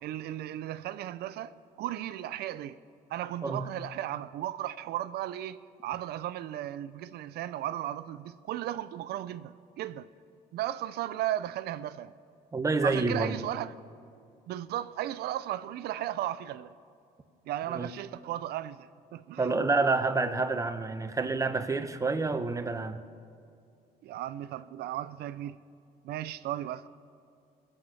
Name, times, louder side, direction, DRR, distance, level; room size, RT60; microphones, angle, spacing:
voice 1, 0.0-2.8 3.1-10.1 10.5-12.1 12.8-13.7 14.5-16.7 17.5-19.6 24.0-25.6 26.0-26.9, right 13 dB, 70° right, 0.6 m, -35 dB
voice 2, 12.5-13.4 17.7-17.9 19.4-23.0, right 3 dB, 20° right, 0.8 m, -28 dB
21.0 x 7.9 x 5.7 m
cardioid pair, 110°, 17 cm